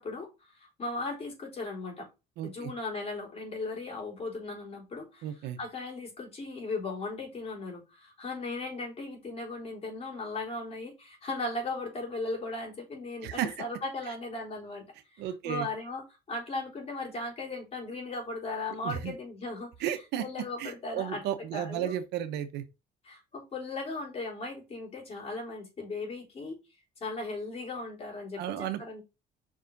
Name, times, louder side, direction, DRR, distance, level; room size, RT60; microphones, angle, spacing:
voice 1, 0.0-2.1 2.4-19.9 20.2-21.2 21.5-22.0 23.0-26.6 27.0-29.0, left 2 dB, 35° left, 3.8 m, -37 dB
voice 2, 2.4-2.7 5.2-5.6 13.2-13.5 15.2-15.7 18.8-19.1 19.8-20.2 20.6-22.6 28.4-29.0, right 11 dB, 85° right, 0.9 m, -33 dB
5.4 x 5.0 x 4.0 m
cardioid pair, 110°, 17 cm